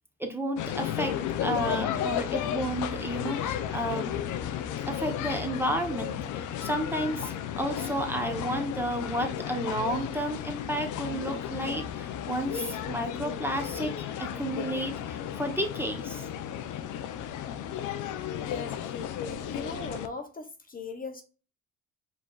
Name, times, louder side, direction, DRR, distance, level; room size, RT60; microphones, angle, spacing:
voice 1, 0.2-4.1 4.9-16.3, right 1 dB, 5° right, 0.9 m, -32 dB
sound 1, 0.6-20.1, left 9 dB, 80° left, 0.6 m, -34 dB
voice 2, 18.3-18.7 19.3-21.2, left 3 dB, 30° left, 0.7 m, -39 dB
5.0 x 3.4 x 2.3 m
cardioid pair, 90°, 30 cm